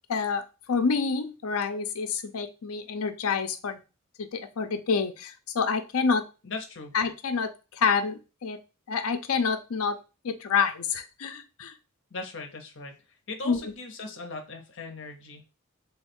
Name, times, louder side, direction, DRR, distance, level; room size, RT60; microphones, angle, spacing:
voice 1, 0.1-3.8 4.2-6.2 6.9-8.6 8.9-10.0 10.2-11.7 13.5-13.7, left 5 dB, 80° left, 8 dB, 0.6 m, -28 dB
voice 2, 6.4-6.9 12.1-12.9 13.3-15.4, left 3 dB, 55° left, 4 dB, 0.8 m, -39 dB
3.5 x 2.4 x 4.3 m, 0.30 s
head